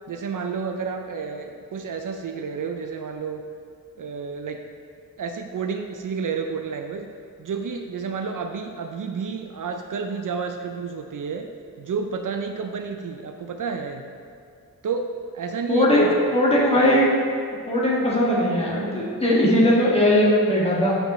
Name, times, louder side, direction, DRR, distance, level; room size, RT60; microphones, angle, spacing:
voice 1, 0.1-3.4 4.0-4.6 5.2-7.1 7.4-14.1 14.8-16.1 16.8-16.9, right 5 dB, 60° right, 5 dB, 0.5 m, -30 dB
voice 2, 15.7-17.1 17.7-20.9, left 1 dB, 15° left, -6 dB, 1.7 m, -19 dB
8.5 x 5.3 x 3.1 m, 2.2 s
cardioid pair, 70°, 36 cm